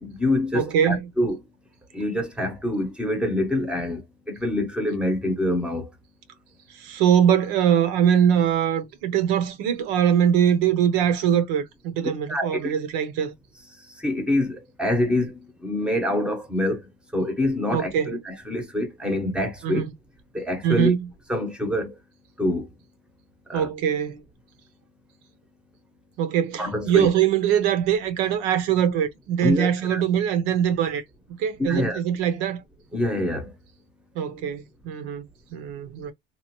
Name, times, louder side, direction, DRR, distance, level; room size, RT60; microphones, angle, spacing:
voice 1, 0.0-1.4 1.9-5.9 12.3-12.7 13.9-16.8 17.1-19.8 20.3-20.9 21.3-22.0 22.4-22.7 23.5-23.7 26.6-27.1 29.4-30.0 31.6-32.0 32.9-33.5, left 1 dB, 5° right, 0.8 m, -26 dB
voice 2, 0.5-1.1 6.8-13.3 17.7-18.2 19.6-19.9 20.6-21.1 23.5-24.2 26.2-31.0 31.4-32.6 34.1-36.1, right 9 dB, 75° right, 0.9 m, -22 dB
3.1 x 2.4 x 2.9 m
cardioid pair, 140°, 30 cm